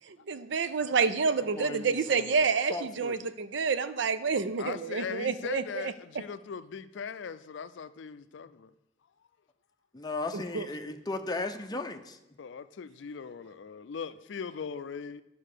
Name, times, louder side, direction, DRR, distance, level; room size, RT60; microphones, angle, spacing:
voice 1, 0.1-5.9 10.3-10.7, right 5 dB, 70° right, 0.5 m, -29 dB
voice 2, 1.4-2.4 2.7-3.2 9.9-12.2, left 2 dB, 20° left, 0.6 m, -36 dB
voice 3, 4.6-8.7 12.4-15.2, left 6 dB, 70° left, 0.4 m, -39 dB
11.0 x 5.4 x 6.6 m
head